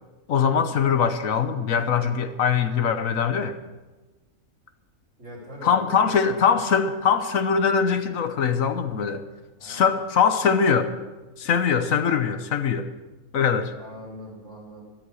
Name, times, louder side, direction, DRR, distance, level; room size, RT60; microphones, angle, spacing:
voice 1, 0.3-3.6 5.6-9.2 9.6-10.9 11.4-12.9 13.3-13.7, left 6 dB, 75° left, 9 dB, 1.3 m, -22 dB
voice 2, 5.2-6.1 9.6-9.9 13.7-14.8, equal, 60° right, -3 dB, 5.9 m, -41 dB
13.0 x 13.0 x 6.4 m, 1.2 s
omnidirectional pair, 1.4 m